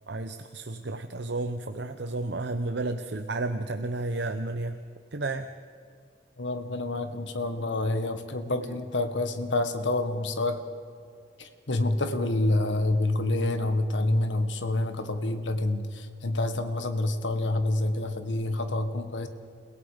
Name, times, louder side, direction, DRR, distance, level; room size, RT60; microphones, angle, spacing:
voice 1, 0.1-4.8 5.1-5.5 8.6-8.8, right 2 dB, 70° right, 7 dB, 0.8 m, -32 dB
voice 2, 6.4-10.6 11.4-19.3, left 2 dB, 90° left, 8 dB, 1.7 m, -28 dB
30.0 x 17.0 x 5.2 m, 2.4 s
head